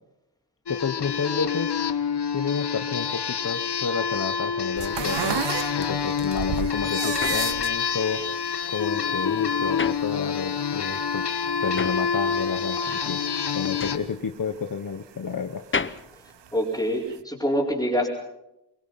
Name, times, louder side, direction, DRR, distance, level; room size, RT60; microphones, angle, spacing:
sound 1, 0.7-14.0, left 6 dB, 70° left, 1.3 m, -27 dB
voice 1, 0.7-1.7 2.3-5.5 5.8-8.3 8.7-11.2 11.6-13.2 13.5-15.6, left 6 dB, 50° left, 6 dB, 1.1 m, -30 dB
sound 2, 4.8-13.2 13.5-15.1 15.6-16.8 17.1-17.2, right 9 dB, 85° right, 0.7 m, -33 dB
sound 3, 7.2-10.7 11.0-17.3, left 4 dB, 30° left, 0.9 m, -35 dB
voice 2, 16.5-18.1, equal, 10° left, -7 dB, 5.1 m, -25 dB
24.0 x 23.0 x 5.7 m, 0.86 s
wide cardioid pair, 115°, 42 cm